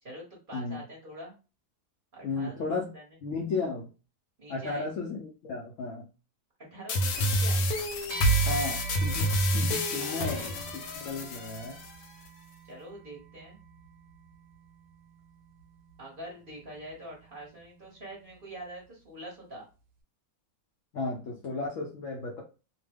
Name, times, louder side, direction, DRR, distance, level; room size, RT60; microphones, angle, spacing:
voice 1, 0.0-1.3 2.1-3.0 4.4-4.9 6.7-7.7 9.9-10.6 12.6-13.6 16.0-19.6, right 1 dB, 35° right, -3 dB, 1.1 m, -44 dB
voice 2, 0.5-0.8 2.2-2.9 3.2-3.9 4.5-6.1 8.5-10.5 11.0-11.8 20.9-22.4, left 3 dB, 65° left, -1 dB, 0.8 m, -34 dB
sound 1, 6.9-11.9, right 1 dB, 85° left, 1.2 m, -28 dB
sound 2, 8.1-17.7, right 2 dB, 65° right, 1.1 m, -46 dB
2.8 x 2.2 x 3.4 m, 0.32 s
omnidirectional pair, 1.8 m